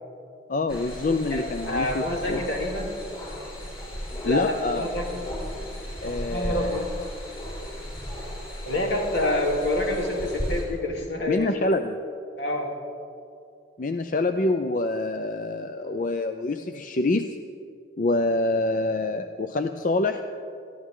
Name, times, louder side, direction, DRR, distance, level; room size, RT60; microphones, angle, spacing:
voice 1, 0.5-2.4 4.3-4.9 6.0-6.8 11.3-12.0 13.8-17.4 18.0-20.2, left 2 dB, 45° left, 7 dB, 0.5 m, -26 dB
sound 1, 0.7-10.6, equal, 30° left, 4.6 m, -35 dB
voice 2, 1.3-2.9 4.2-5.2 6.0-6.8 8.7-11.7 12.4-12.7, left 1 dB, 75° left, -1 dB, 3.1 m, -27 dB
22.0 x 14.5 x 3.8 m, 2.5 s
head